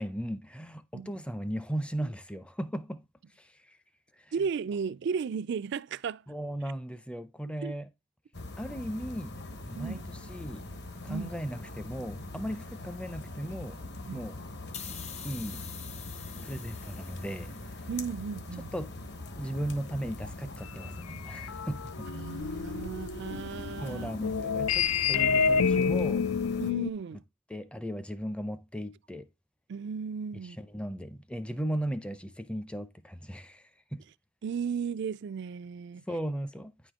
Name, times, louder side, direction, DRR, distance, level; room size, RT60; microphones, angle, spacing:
voice 1, 0.0-3.0 3.4-3.8 4.2-4.3 6.3-7.8 8.6-9.4 9.7-10.0 10.3-10.7 11.0-13.8 14.1-14.4 15.2-15.7 16.4-17.5 18.7-18.9 19.3-22.1 23.8-26.3 27.5-29.3 30.6-33.6 33.9-34.0 36.1-36.9, equal, 5° left, 0.5 m, -36 dB
voice 2, 4.3-6.3 7.6-7.7 9.8-10.0 11.1-11.3 14.1-14.2 17.9-18.7 22.1-24.1 26.6-27.2 29.7-30.6 34.4-36.0, right 6 dB, 55° right, 0.3 m, -35 dB
sound 1, 8.3-26.7, left 2 dB, 55° left, 1.2 m, -42 dB
sound 2, 14.7-18.1, left 7 dB, 30° left, 0.8 m, -45 dB
sound 3, 21.1-26.9, left 6 dB, 85° left, 0.5 m, -29 dB
9.7 x 5.1 x 3.6 m
head